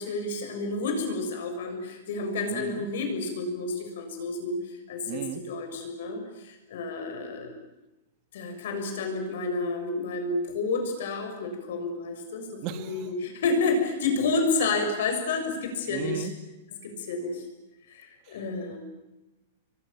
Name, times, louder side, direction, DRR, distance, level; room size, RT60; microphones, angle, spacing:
voice 1, 0.0-7.5 8.3-16.3 16.8-17.5 17.9-18.8, left 3 dB, 65° left, 4 dB, 7.2 m, -30 dB
voice 2, 2.5-2.9 5.1-5.4 12.6-13.1 15.9-16.3, right 10 dB, 35° right, 10 dB, 1.8 m, -35 dB
29.5 x 23.0 x 7.3 m, 1.0 s
supercardioid pair, 170°, 0 cm